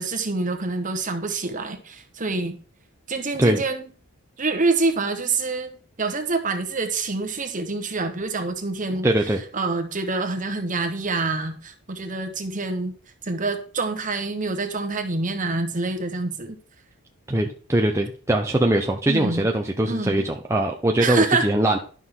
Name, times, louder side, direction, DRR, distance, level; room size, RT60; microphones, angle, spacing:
voice 1, 0.0-2.6 3.1-3.9 4.4-9.1 9.5-12.9 13.2-16.6 19.1-19.5 19.9-20.2 21.0-21.5, right 3 dB, 35° right, 7 dB, 1.3 m, -26 dB
voice 2, 9.0-9.4 17.3-21.8, right 1 dB, 15° right, 2 dB, 0.7 m, -21 dB
11.5 x 6.3 x 3.7 m, 0.41 s
head